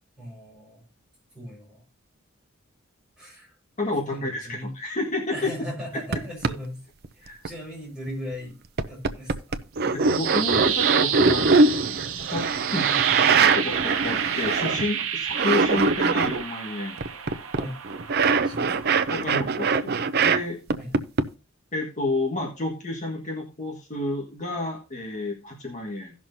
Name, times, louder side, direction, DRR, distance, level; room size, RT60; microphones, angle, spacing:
voice 1, 0.2-0.8 1.3-1.8 3.2-3.5 4.1-4.7 5.3-6.8 7.1-8.6 8.8-9.6 12.8-13.1 17.6-17.8 18.4-18.9 20.8-20.9, equal, 5° right, -4 dB, 5.3 m, -38 dB
voice 2, 3.8-5.5 7.2-7.4 9.9-11.6 12.3-12.5 12.7-12.9 13.4-17.0 18.7-18.8 19.1-20.6 21.7-26.1, left 2 dB, 35° left, -1 dB, 1.7 m, -30 dB
sound 1, 6.1-6.2 6.4-6.5 7.0-7.5 8.1-8.2 8.8-15.0 15.3-16.4 17.0-20.4 20.7-21.2, right 4 dB, 50° right, 0.6 m, -22 dB
sound 2, 9.8-19.8, right 9 dB, 80° right, 1.0 m, -30 dB
17.0 x 6.2 x 2.7 m, 0.31 s
head